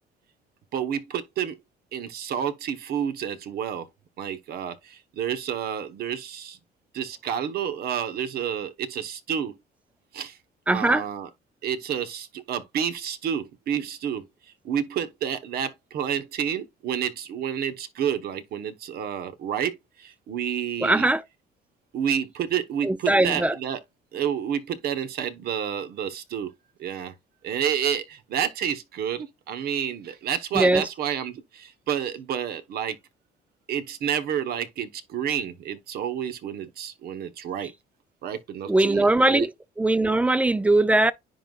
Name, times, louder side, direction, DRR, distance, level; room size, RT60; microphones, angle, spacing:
voice 1, 0.7-1.6 1.9-3.9 4.2-6.6 6.9-9.5 10.1-10.4 10.7-11.3 11.6-14.2 14.6-21.1 21.9-23.8 24.1-26.5 26.8-27.1 27.4-33.0 33.7-37.7 38.2-39.5, right 8 dB, 65° right, 1.1 m, -29 dB
voice 2, 10.7-11.1 20.8-21.2 22.8-23.6 30.5-30.9 38.7-39.5 39.8-41.1, right 2 dB, 10° right, 0.4 m, -20 dB
10.0 x 3.9 x 2.4 m
cardioid pair, 110°, 17 cm